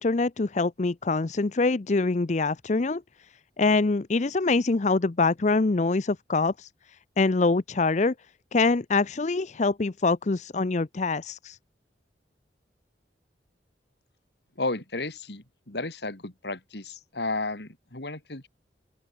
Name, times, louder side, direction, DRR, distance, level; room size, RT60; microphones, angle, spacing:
voice 1, 0.0-3.0 3.6-6.7 7.2-8.1 8.5-11.6, left 3 dB, 40° left, 0.6 m, -24 dB
voice 2, 14.6-18.5, left 2 dB, 70° left, 2.8 m, -33 dB
open air
head